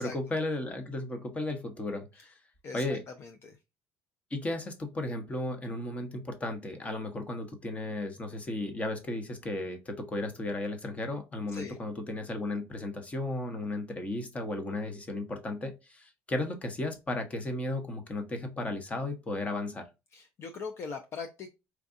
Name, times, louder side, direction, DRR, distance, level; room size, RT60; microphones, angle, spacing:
voice 1, 0.0-2.3 2.7-3.0 4.3-19.8, left 2 dB, 20° left, 5 dB, 1.0 m, -34 dB
voice 2, 2.6-3.6 11.5-11.8 20.1-21.5, left 5 dB, 45° left, 6 dB, 0.6 m, -41 dB
4.6 x 2.5 x 2.5 m, 0.25 s
cardioid pair, 110°, 6 cm